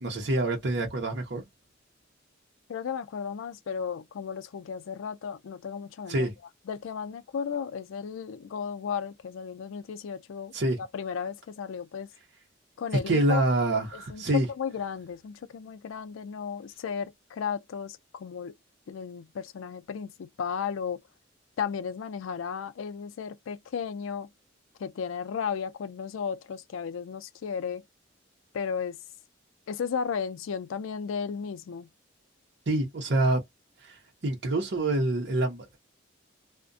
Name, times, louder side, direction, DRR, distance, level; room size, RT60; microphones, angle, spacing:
voice 1, 0.0-1.4 6.1-6.3 10.5-10.8 13.1-14.5 32.7-33.4 33.8-35.8, right 2 dB, 60° right, 0.7 m, -26 dB
voice 2, 2.7-6.3 6.7-10.5 10.8-12.1 12.8-13.4 13.9-18.6 18.9-21.0 21.6-24.3 24.8-27.8 28.5-29.0 29.7-31.9, left 6 dB, 90° left, 0.4 m, -34 dB
2.4 x 2.1 x 2.5 m
head